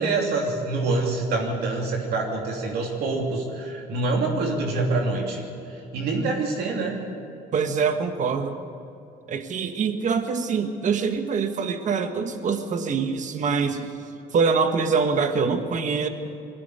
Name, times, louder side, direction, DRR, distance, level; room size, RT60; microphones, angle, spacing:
voice 1, 0.0-5.4 5.7-7.0, right 3 dB, 70° right, 0 dB, 3.0 m, -26 dB
voice 2, 7.5-8.6 9.3-13.9 14.3-16.1, right 5 dB, 45° right, 7 dB, 1.5 m, -24 dB
21.5 x 15.5 x 8.2 m, 2.6 s
cardioid pair, 110°, 17 cm